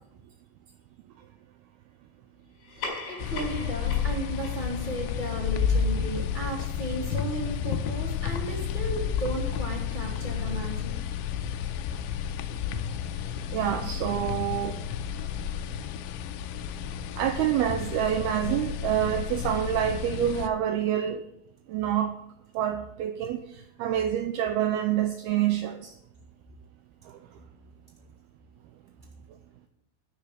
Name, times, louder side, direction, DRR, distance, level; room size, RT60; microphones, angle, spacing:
sound 1, 2.6-7.4, left 4 dB, 55° left, 6.2 m, -42 dB
voice 1, 2.7-11.0, right 1 dB, 15° left, -2 dB, 1.8 m, -35 dB
sound 2, 3.2-20.5, left 7 dB, 90° left, 3.1 m, -31 dB
voice 2, 13.5-14.8 17.2-21.2 21.7-22.2 22.6-23.4 23.8-25.9, right 11 dB, 85° right, 8 dB, 2.3 m, -27 dB
12.0 x 6.7 x 9.1 m, 0.82 s
omnidirectional pair, 5.2 m